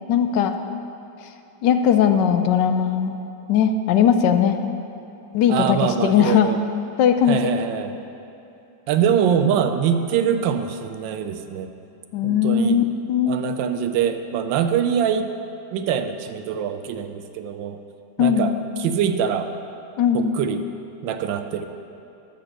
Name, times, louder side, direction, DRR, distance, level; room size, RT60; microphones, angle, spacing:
voice 1, 0.1-0.6 1.6-3.2 3.5-4.6 5.3-6.5 7.0-7.5 12.1-13.5 18.2-18.6 20.0-20.3, left 8 dB, 75° left, 8 dB, 1.2 m, -19 dB
voice 2, 5.5-6.6 7.3-8.0 8.9-11.7 12.2-12.8 13.3-15.3 15.7-17.8 18.2-18.5 18.8-19.5 20.1-20.7 21.0-21.7, right 8 dB, 85° right, 8 dB, 1.3 m, -23 dB
12.0 x 4.2 x 6.6 m, 2.9 s
omnidirectional pair, 2.0 m